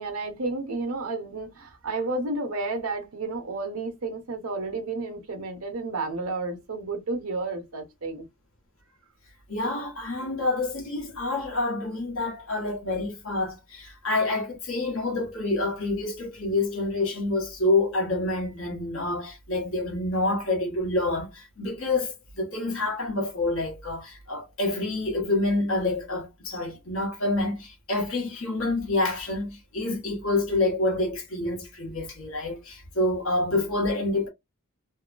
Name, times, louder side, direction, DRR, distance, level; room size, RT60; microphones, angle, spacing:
voice 1, 0.0-8.3, right 3 dB, 80° right, 0.8 m, -31 dB
voice 2, 9.5-34.3, left 2 dB, 65° left, 1.1 m, -27 dB
2.8 x 2.2 x 2.4 m
head